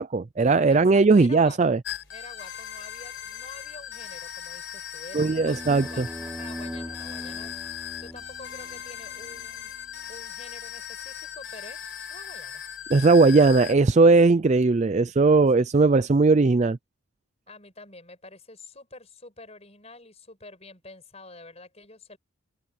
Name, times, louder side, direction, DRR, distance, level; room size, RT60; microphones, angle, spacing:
voice 1, 0.0-1.8 5.1-6.1 12.9-16.8, right 3 dB, 30° right, 0.4 m, -18 dB
voice 2, 0.7-1.8 2.1-7.5 8.0-9.7 10.1-11.8 12.1-12.6 15.6-15.7 17.5-22.2, left 3 dB, 30° left, 6.3 m, -47 dB
sound 1, 1.8-13.7, left 9 dB, 55° left, 4.8 m, -38 dB
sound 2, 5.2-9.5, equal, 5° right, 5.6 m, -41 dB
head